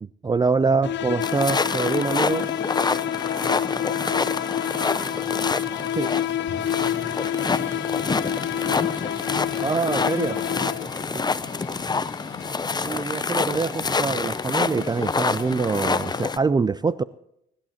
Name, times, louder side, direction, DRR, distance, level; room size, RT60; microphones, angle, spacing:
voice 1, 0.2-2.5 6.0-6.1 9.6-10.4 12.8-17.0, right 4 dB, 20° right, 16 dB, 0.4 m, -24 dB
sound 1, 0.8-11.0, left 10 dB, 65° left, 0.6 m, -28 dB
sound 2, 1.2-16.4, left 4 dB, 20° left, 0.6 m, -27 dB
voice 2, 3.2-12.4, left 3 dB, 45° left, 3 dB, 4.2 m, -45 dB
sound 3, 6.5-16.3, left 7 dB, 90° left, 2.0 m, -41 dB
23.5 x 11.5 x 3.0 m, 0.76 s
cardioid pair, 90°, 20 cm